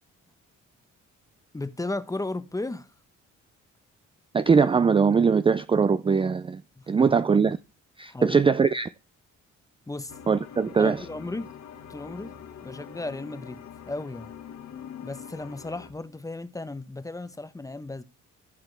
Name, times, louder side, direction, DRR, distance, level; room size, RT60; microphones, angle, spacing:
voice 1, 1.5-2.9 6.8-7.1 8.1-8.4 9.9-10.2 10.8-11.5 11.9-12.3 12.6-13.6 13.9-14.3 15.0-18.0, left 2 dB, 10° left, 0.9 m, -35 dB
voice 2, 4.3-6.6 6.9-7.6 8.0-8.9 10.3-11.0, right 5 dB, 20° right, 0.4 m, -21 dB
sound 1, 10.1-15.9, left 8 dB, 65° left, 1.5 m, -44 dB
15.0 x 6.0 x 3.3 m
cardioid pair, 90°, 30 cm